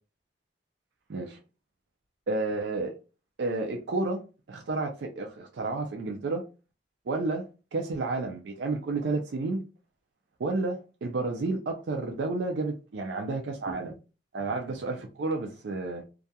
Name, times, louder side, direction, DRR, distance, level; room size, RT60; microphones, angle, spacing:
voice 1, 2.3-2.9 3.4-4.2 4.5-6.4 7.1-7.4 7.7-9.7 10.4-14.0 14.3-16.0, right 3 dB, 70° right, 0.4 m, -31 dB
2.3 x 2.2 x 2.7 m
head